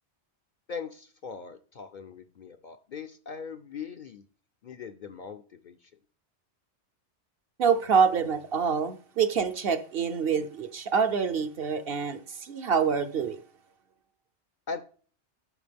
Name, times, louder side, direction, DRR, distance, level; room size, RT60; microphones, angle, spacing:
voice 1, 0.7-4.2 4.6-5.9 14.7-14.8, left 5 dB, 55° left, 0.6 m, -40 dB
voice 2, 7.6-13.4, right 6 dB, 60° right, 0.9 m, -26 dB
11.0 x 5.8 x 3.4 m
omnidirectional pair, 1.2 m